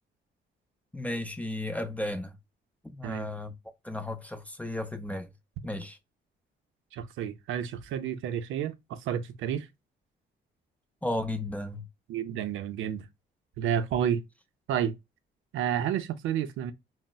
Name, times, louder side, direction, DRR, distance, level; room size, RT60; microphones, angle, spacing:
voice 1, 0.9-2.3 2.9-3.5 3.8-5.3 5.6-6.0 11.0-11.9, left 1 dB, 5° left, 0.5 m, -34 dB
voice 2, 6.9-9.7 12.1-13.1 13.6-14.2 14.7-14.9 15.5-16.7, right 9 dB, 80° right, 0.5 m, -30 dB
3.9 x 2.0 x 2.2 m
cardioid pair, 90°, 20 cm